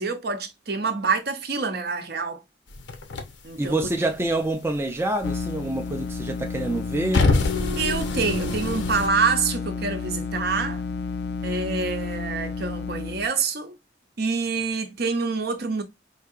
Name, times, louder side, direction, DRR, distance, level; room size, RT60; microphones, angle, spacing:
voice 1, 0.0-2.4 3.4-3.8 7.8-10.8 11.4-13.8 14.2-15.8, right 4 dB, 55° right, 0.7 m, -26 dB
sound 1, 2.7-4.4 4.7-6.1 6.5-9.1, left 3 dB, 85° left, 0.8 m, -26 dB
voice 2, 3.6-7.3, right 2 dB, 15° right, 0.4 m, -26 dB
sound 2, 5.2-13.3, left 4 dB, 60° left, 0.5 m, -31 dB
4.6 x 2.7 x 2.4 m
head